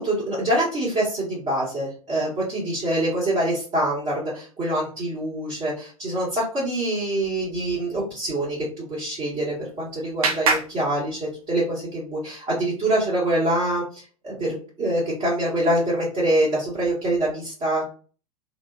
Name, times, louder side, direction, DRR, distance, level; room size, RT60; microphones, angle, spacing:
voice 1, 0.0-18.0, right 1 dB, 30° right, -8 dB, 1.4 m, -25 dB
Clapping, 9.1-11.7, right 4 dB, 70° right, 0.7 m, -29 dB
3.4 x 2.0 x 2.4 m, 0.39 s
figure-of-eight pair, 95°, 19 cm